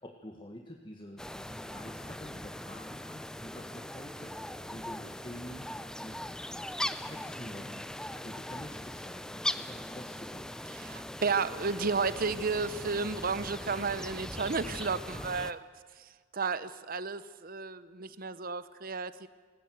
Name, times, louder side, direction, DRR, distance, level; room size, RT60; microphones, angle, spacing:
voice 1, 0.0-4.3 4.7-6.2 6.5-10.6, left 1 dB, 25° left, 2 dB, 1.6 m, -48 dB
sound 1, 1.2-15.5, left 1 dB, 5° left, 0.6 m, -40 dB
voice 2, 10.7-15.7 16.0-19.3, right 4 dB, 50° right, 14 dB, 1.0 m, -33 dB
19.0 x 19.0 x 9.4 m, 1.5 s
head